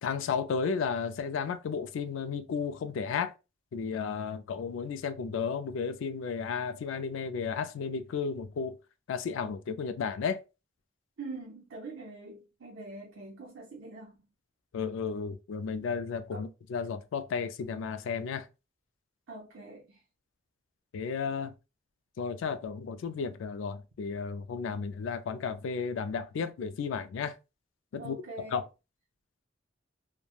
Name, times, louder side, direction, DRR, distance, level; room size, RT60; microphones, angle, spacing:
voice 1, 0.0-3.3 3.7-8.8 9.1-10.4 14.7-18.5 20.9-21.5 22.2-27.3 27.9-28.6, left 6 dB, 75° left, 0.3 m, -33 dB
voice 2, 11.2-14.2 16.3-16.5 19.3-20.0 28.0-28.6, right 3 dB, 85° right, 0.7 m, -44 dB
3.1 x 2.1 x 2.3 m
head